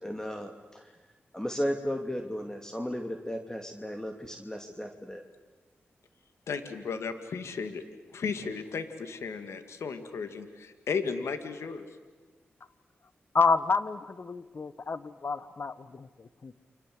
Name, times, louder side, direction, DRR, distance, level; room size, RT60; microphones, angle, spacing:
voice 1, 0.0-0.9 1.3-5.2, equal, 15° left, 4 dB, 2.6 m, -35 dB
voice 2, 6.5-7.8 8.1-11.8, left 5 dB, 80° left, 9 dB, 2.2 m, -35 dB
voice 3, 13.3-16.6, left 4 dB, 55° left, 15 dB, 1.3 m, -29 dB
30.0 x 25.0 x 7.9 m, 1.3 s
cardioid pair, 50°, 5 cm